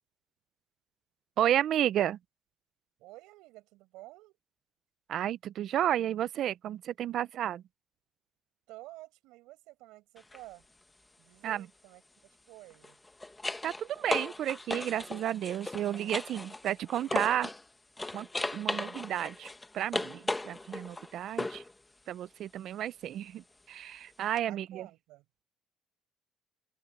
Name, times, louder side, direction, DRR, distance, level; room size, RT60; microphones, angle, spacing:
voice 1, 1.4-2.2 5.1-7.6 11.4-11.7 13.6-17.5 18.1-18.3 18.5-21.6 22.1-24.9, right 11 dB, 65° right, 0.6 m, -32 dB
voice 2, 3.0-4.4 8.7-10.7 11.2-13.0 24.5-25.2, right 19 dB, 90° right, 5.3 m, -51 dB
sound 1, 10.2-10.4 12.7-17.6 18.0-21.7 24.4-24.5, left 2 dB, 15° left, 1.4 m, -36 dB
open air
cardioid pair, 90°, 0 cm